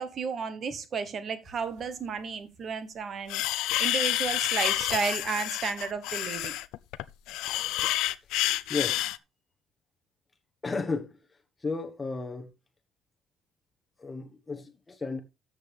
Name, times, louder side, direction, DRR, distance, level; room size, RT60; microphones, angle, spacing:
voice 1, 0.0-3.4 3.8-6.6, right 5 dB, 30° right, 1.2 m, -33 dB
sound 1, 3.3-9.2, left 16 dB, 75° left, 0.5 m, -29 dB
voice 2, 8.7-9.0 10.6-11.2 11.6-12.5 14.0-15.2, left 4 dB, 15° left, 1.4 m, -33 dB
13.0 x 7.6 x 3.5 m
cardioid pair, 180°, 0 cm